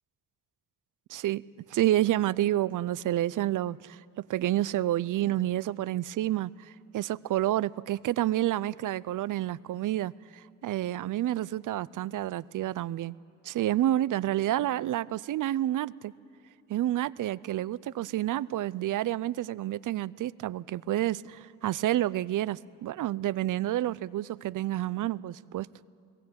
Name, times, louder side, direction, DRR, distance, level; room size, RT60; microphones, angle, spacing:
voice 1, 1.1-1.4 1.7-4.0 4.3-13.1 13.4-16.1 16.7-25.7, right 14 dB, 65° right, 0.5 m, -29 dB
22.0 x 17.5 x 8.7 m
cardioid pair, 110°, 33 cm